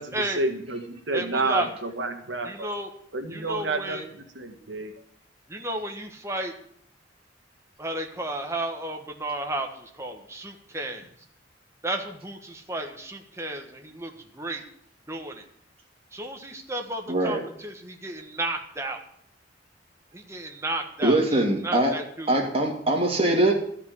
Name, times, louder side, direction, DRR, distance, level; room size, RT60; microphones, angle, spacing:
voice 1, 0.0-2.7 3.1-4.9, right 2 dB, 80° right, 5 dB, 1.8 m, -30 dB
voice 2, 1.1-1.7 2.4-2.9 3.3-4.1 5.5-6.5 7.8-11.1 11.8-14.6 15.1-15.4 16.1-19.0 20.1-22.4, right 1 dB, 15° right, 3 dB, 1.4 m, -33 dB
voice 3, 17.1-17.4 21.0-21.9 22.3-23.5, right 1 dB, 30° right, 1 dB, 2.7 m, -22 dB
13.0 x 5.9 x 9.6 m, 0.66 s
head